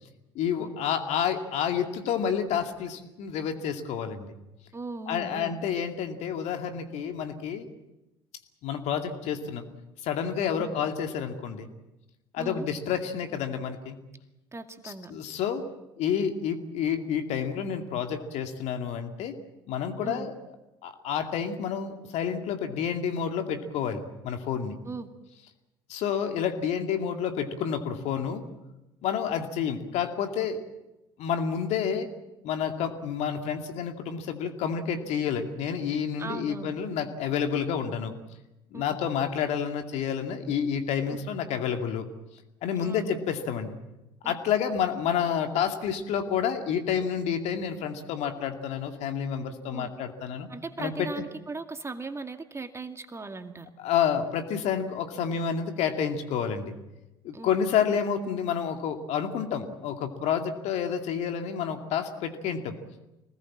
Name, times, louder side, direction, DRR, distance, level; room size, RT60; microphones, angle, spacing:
voice 1, 0.3-4.3 5.1-7.7 8.6-9.7 10.0-11.7 12.3-14.0 14.8-15.6 16.0-19.3 19.7-20.3 20.8-24.8 25.9-28.4 29.0-30.6 31.2-32.1 32.4-38.1 38.7-42.1 42.6-43.7 44.2-50.5 50.8-51.1 53.8-56.8 57.2-62.8, left 7 dB, 60° left, 6 dB, 2.4 m, -29 dB
voice 2, 4.7-5.6 10.6-10.8 12.4-12.7 14.5-15.1 20.0-20.3 24.8-25.1 36.2-36.7 38.7-38.8 42.8-43.2 44.2-44.3 49.7-49.9 50.5-53.7 57.3-57.6, right 3 dB, 20° right, 6 dB, 2.3 m, -38 dB
26.0 x 19.5 x 7.5 m, 0.97 s
hypercardioid pair, 60°, 13 cm